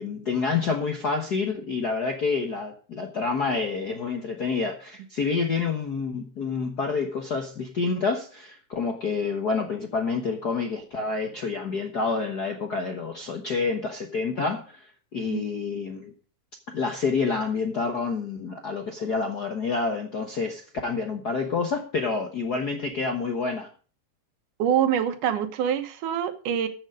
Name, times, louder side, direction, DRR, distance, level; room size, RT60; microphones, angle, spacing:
voice 1, 0.0-16.1 16.7-23.7, left 4 dB, 55° left, 1.0 m, -28 dB
voice 2, 24.6-26.7, right 9 dB, 80° right, 2.7 m, -25 dB
14.0 x 7.2 x 5.0 m
omnidirectional pair, 3.6 m